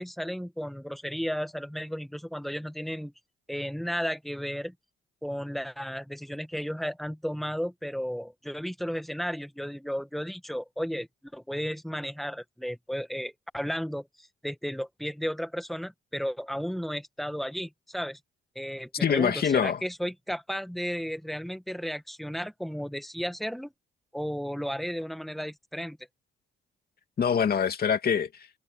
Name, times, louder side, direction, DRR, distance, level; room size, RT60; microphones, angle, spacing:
voice 1, 0.0-3.1 3.5-4.7 5.2-11.1 11.3-18.2 18.5-23.7 24.1-26.0, equal, ahead, 1.5 m, -34 dB
voice 2, 19.0-19.8 27.2-28.5, left 7 dB, 50° left, 2.6 m, -25 dB
cardioid pair, 90°, 20 cm